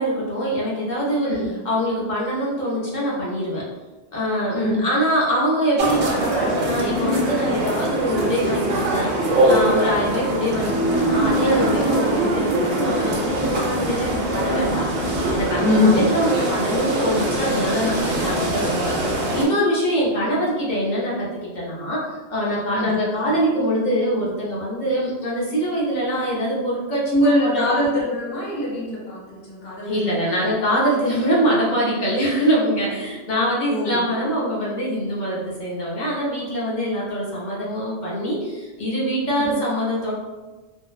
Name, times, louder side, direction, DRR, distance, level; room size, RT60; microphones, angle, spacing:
voice 1, 0.0-1.3 1.6-3.7 4.1-14.9 15.3-27.1 27.4-27.6 29.8-40.1, equal, 50° left, -6 dB, 0.7 m, -24 dB
sound 1, 5.8-19.5, right 1 dB, 90° right, 0.9 m, -22 dB
voice 2, 15.6-16.0 22.7-22.9 27.1-30.5 33.7-34.1 39.3-39.5, left 1 dB, 65° left, -6 dB, 1.0 m, -22 dB
2.6 x 2.0 x 2.3 m, 1.2 s
omnidirectional pair, 1.1 m